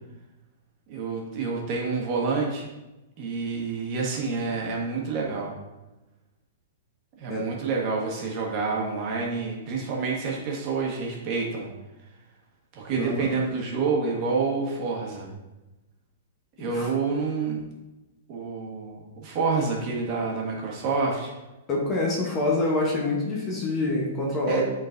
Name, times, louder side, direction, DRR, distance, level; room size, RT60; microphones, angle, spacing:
voice 1, 0.9-2.7 3.2-5.5 7.2-11.7 12.7-15.3 16.6-17.6 18.3-21.3 24.5-24.6, right 4 dB, 30° right, -2 dB, 1.4 m, -28 dB
voice 2, 13.0-13.3 16.6-16.9 21.7-24.6, left 2 dB, 20° left, -2 dB, 0.9 m, -26 dB
10.5 x 3.9 x 2.6 m, 1.0 s
hypercardioid pair, 165°, 0 cm